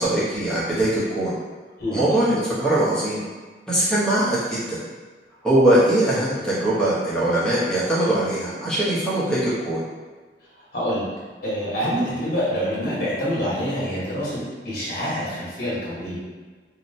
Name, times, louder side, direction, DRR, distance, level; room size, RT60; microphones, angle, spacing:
voice 1, 0.0-1.3 1.9-3.2 3.7-4.8 5.4-9.8, right 1 dB, 5° left, -10 dB, 0.7 m, -21 dB
voice 2, 10.7-11.1 11.4-16.2, equal, 55° left, -8 dB, 1.0 m, -26 dB
2.8 x 2.0 x 2.6 m, 1.4 s
head